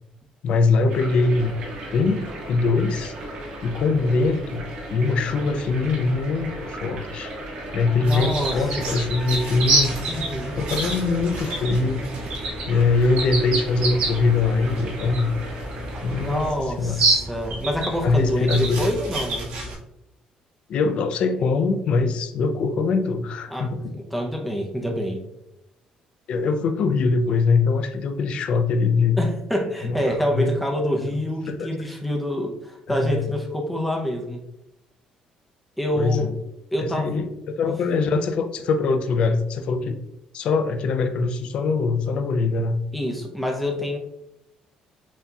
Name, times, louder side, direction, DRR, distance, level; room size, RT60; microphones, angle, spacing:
voice 1, 0.4-1.6 1.9-3.1 3.6-7.3 7.7-10.0 10.6-12.0 12.7-15.3 16.0-17.1 18.0-18.8 20.7-24.0 26.3-29.2 29.8-30.5 31.5-31.7 32.9-33.3 35.9-36.4 36.8-40.0 40.3-42.8, left 4 dB, 50° left, 8 dB, 0.4 m, -22 dB
sound 1, 0.9-16.5, right 1 dB, 55° right, 1.5 m, -36 dB
Wind instrument woodwind instrument, 6.4-11.9, equal, 25° right, 1.6 m, -44 dB
voice 2, 8.0-8.9 10.1-10.6 16.2-19.5 23.5-25.2 29.2-34.5 35.8-36.3 36.7-37.2 37.6-37.7 42.9-44.0, equal, ahead, 1 dB, 0.6 m, -27 dB
sound 2, 8.0-19.7, right 2 dB, 80° right, 1.6 m, -28 dB
7.1 x 2.8 x 2.3 m, 0.85 s
cardioid pair, 175°, 2 cm